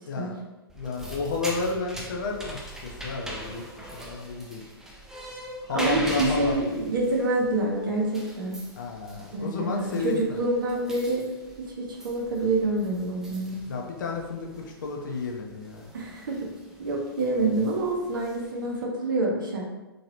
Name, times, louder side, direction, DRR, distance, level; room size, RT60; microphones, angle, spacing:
voice 1, 0.1-0.4 0.7-4.6 5.6-6.6 8.8-10.4 13.7-15.9, left 4 dB, 50° left, 0 dB, 0.6 m, -32 dB
sound 1, 0.7-18.8, right 1 dB, 5° right, 0.3 m, -42 dB
voice 2, 5.7-8.6 9.3-11.3 11.6-13.7 15.9-16.5 16.8-19.6, right 2 dB, 55° right, -2 dB, 0.9 m, -27 dB
3.1 x 2.8 x 2.7 m, 1.1 s
figure-of-eight pair, 110°, 13 cm